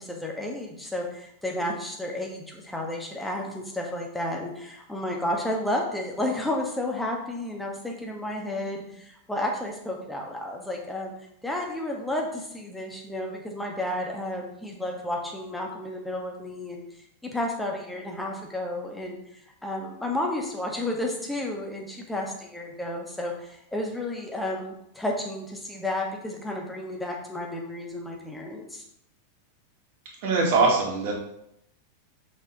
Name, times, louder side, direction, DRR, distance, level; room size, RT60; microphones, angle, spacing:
voice 1, 0.0-11.1 11.4-16.8 17.2-28.8, left 1 dB, 5° left, 0 dB, 1.3 m, -32 dB
voice 2, 30.2-31.1, right 3 dB, 50° right, -1 dB, 1.8 m, -22 dB
6.3 x 6.2 x 2.9 m, 0.77 s
figure-of-eight pair, 90°, 0 cm